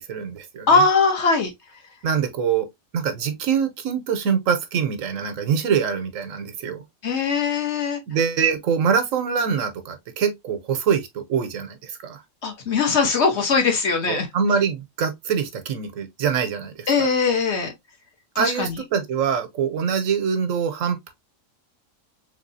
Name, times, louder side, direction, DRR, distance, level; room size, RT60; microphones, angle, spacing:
voice 1, 0.0-0.8 2.0-2.7 2.9-6.8 8.1-12.2 14.1-17.1 18.4-21.1, right 7 dB, 70° right, 1.1 m, -24 dB
voice 2, 0.7-1.5 7.0-8.0 12.4-14.3 16.9-17.7 18.3-18.8, left 4 dB, 55° left, 1.2 m, -20 dB
3.5 x 3.3 x 2.5 m
omnidirectional pair, 1.4 m